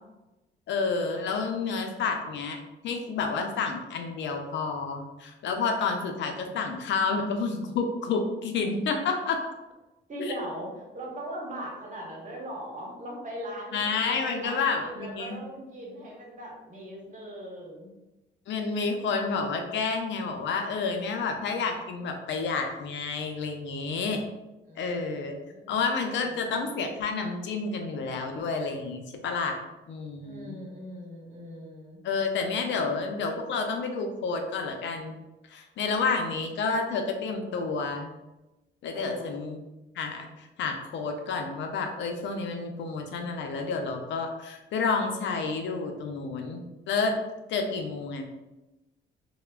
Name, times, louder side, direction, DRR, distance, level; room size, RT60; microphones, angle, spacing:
voice 1, 0.7-9.4 13.7-15.4 18.5-24.2 24.8-25.3 25.7-29.6 29.9-30.6 32.0-35.2 35.5-38.1 38.8-39.6 40.0-47.2 47.5-48.3, left 4 dB, 65° left, 4 dB, 0.5 m, -30 dB
voice 2, 10.1-17.9 24.6-26.7 30.2-32.0 38.9-39.3, equal, 40° right, -3 dB, 1.0 m, -40 dB
3.3 x 2.1 x 2.2 m, 1.0 s
cardioid pair, 90°, 20 cm